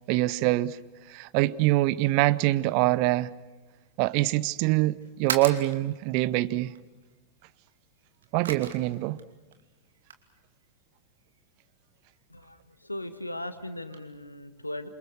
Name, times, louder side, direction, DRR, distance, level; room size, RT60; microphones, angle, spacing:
voice 1, 0.1-0.8 1.1-3.3 4.0-6.7 8.3-9.2, right 18 dB, 45° right, 0.8 m, -24 dB
sound 1, 2.3-14.0, right 7 dB, 65° right, 2.6 m, -44 dB
voice 2, 12.3-14.9, left 1 dB, 85° left, 1.6 m, -38 dB
28.0 x 25.5 x 6.5 m
figure-of-eight pair, 90°, 0 cm